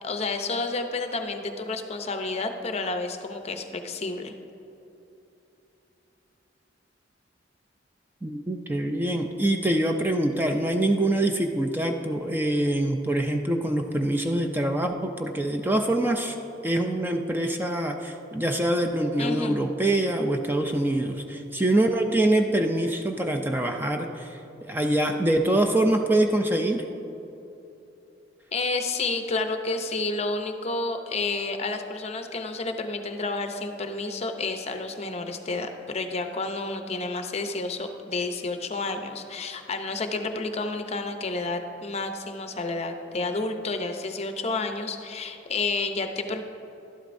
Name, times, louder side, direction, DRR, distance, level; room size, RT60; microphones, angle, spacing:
voice 1, 0.0-4.3 19.2-19.6 28.5-46.4, left 3 dB, 35° left, 6 dB, 0.6 m, -30 dB
voice 2, 8.2-16.4 16.6-26.8, right 1 dB, 10° right, 4 dB, 0.4 m, -25 dB
12.5 x 11.5 x 2.6 m, 2.9 s
head